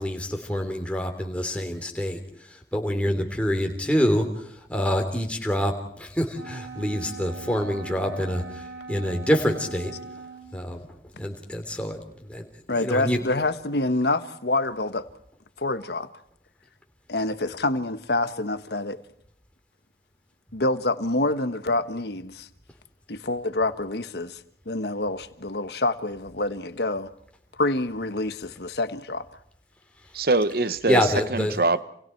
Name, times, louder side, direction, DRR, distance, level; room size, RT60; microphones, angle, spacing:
voice 1, 0.0-2.2 2.5-9.9 10.5-10.8 11.2-13.2 30.6-31.6, equal, 5° left, 3.2 m, -26 dB
Wind instrument woodwind instrument, 6.3-10.6, right 3 dB, 85° right, 3.1 m, -40 dB
voice 2, 12.7-15.1 15.6-16.1 17.1-19.0 20.5-22.5 23.1-27.1 27.6-29.2, left 2 dB, 70° left, 1.4 m, -27 dB
voice 3, 30.1-31.8, right 3 dB, 55° right, 1.0 m, -23 dB
29.5 x 28.5 x 4.6 m
head